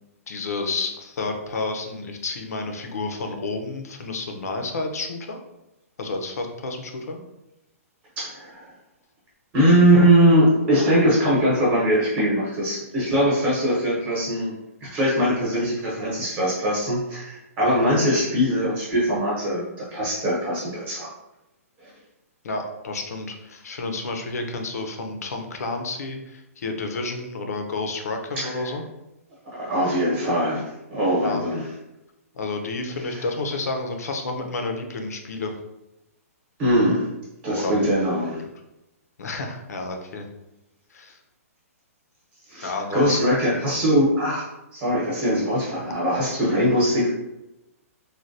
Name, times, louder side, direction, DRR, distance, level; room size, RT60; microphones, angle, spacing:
voice 1, 0.3-5.4 6.0-7.2 17.6-17.8 22.4-28.8 31.2-31.4 32.3-35.5 37.6-37.9 39.2-40.3 40.9-41.2 42.6-43.3 45.9-46.0, left 3 dB, 80° left, 4 dB, 0.6 m, -30 dB
voice 2, 8.2-8.7 9.5-14.5 14.8-21.1 28.3-28.7 29.5-30.6 30.9-31.7 33.1-33.2 36.6-37.1 37.4-38.4 42.5-44.4 44.7-47.1, equal, 20° right, -6 dB, 0.8 m, -21 dB
3.3 x 2.2 x 2.6 m, 0.94 s
hypercardioid pair, 160°, 8 cm